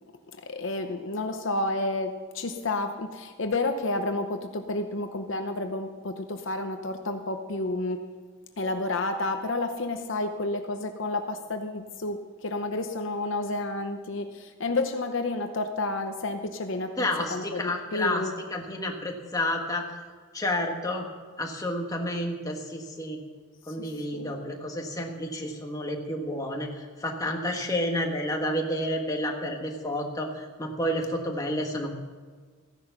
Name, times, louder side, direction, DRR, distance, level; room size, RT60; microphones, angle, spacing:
voice 1, 0.5-8.1 8.6-18.3 24.1-24.4, left 2 dB, 55° left, 6 dB, 0.8 m, -30 dB
voice 2, 17.0-18.2 18.5-19.8 20.3-21.0 21.4-23.2 23.7-31.9, left 1 dB, 15° left, 1 dB, 1.5 m, -30 dB
15.5 x 11.0 x 5.9 m, 1.5 s
head